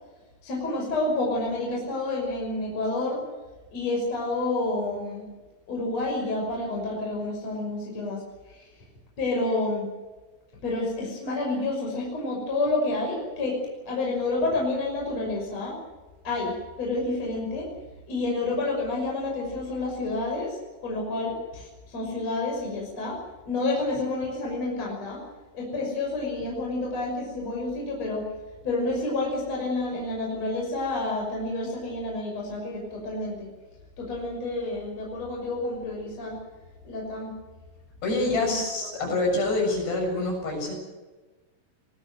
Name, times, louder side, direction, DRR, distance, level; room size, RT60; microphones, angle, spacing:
voice 1, 0.4-3.3 3.7-5.3 5.7-8.2 8.5-8.6 9.2-9.9 10.6-13.6 13.9-15.8 16.2-17.7 18.1-23.2 23.4-25.2 25.5-28.2 28.6-33.5 34.0-36.4 36.8-37.3 38.3-38.6 39.0-39.1, left 2 dB, 30° left, -1 dB, 6.9 m, -29 dB
voice 2, 38.0-40.8, left 2 dB, 55° left, 1 dB, 9.1 m, -26 dB
23.0 x 20.0 x 8.0 m, 1.2 s
omnidirectional pair, 5.8 m